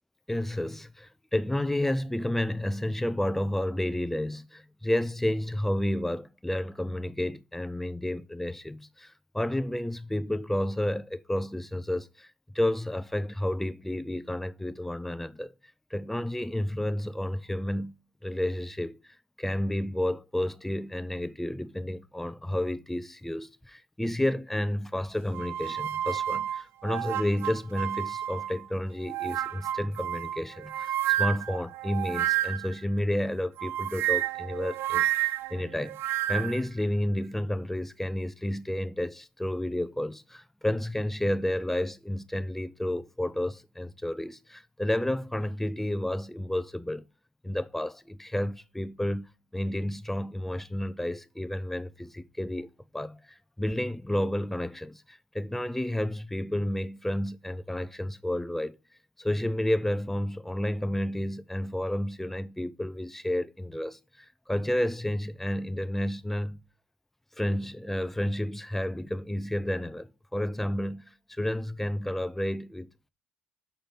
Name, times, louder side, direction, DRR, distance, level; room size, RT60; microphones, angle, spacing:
voice 1, 0.3-12.3 12.5-15.5 15.9-17.9 18.2-36.0 36.3-47.0 47.4-58.8 59.2-66.6 67.4-73.1, left 1 dB, 5° left, 0.6 m, -31 dB
sound 1, 25.3-28.6 29.1-32.8 33.6-36.6, right 13 dB, 70° right, 0.4 m, -30 dB
6.9 x 5.2 x 5.9 m
supercardioid pair, 80°, 4 cm